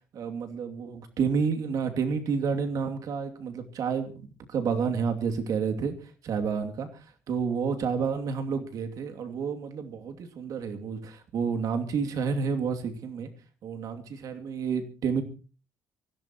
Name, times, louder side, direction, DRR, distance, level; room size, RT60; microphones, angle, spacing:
voice 1, 0.1-5.9 6.2-6.9 7.3-13.3 13.6-15.2, right 6 dB, 65° right, 5 dB, 2.7 m, -30 dB
24.5 x 16.0 x 3.0 m, 0.34 s
cardioid pair, 125°, 7 cm